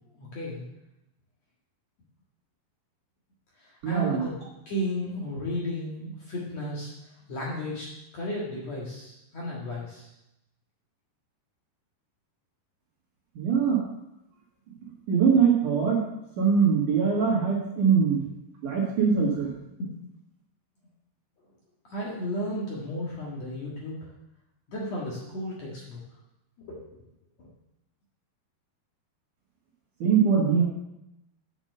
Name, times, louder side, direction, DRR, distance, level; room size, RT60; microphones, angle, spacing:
voice 1, 0.2-0.6 3.6-7.9 8.1-10.1 18.2-18.3 19.8-19.9 21.9-24.1 24.7-26.0 26.6-26.8 27.4-27.5, equal, 50° left, -5 dB, 2.4 m, -34 dB
voice 2, 3.8-4.2 13.4-13.8 15.1-16.0 16.4-18.2 18.6-19.5 30.0-30.6, right 6 dB, 55° right, -3 dB, 2.8 m, -22 dB
7.3 x 7.1 x 6.7 m, 0.87 s
omnidirectional pair, 4.8 m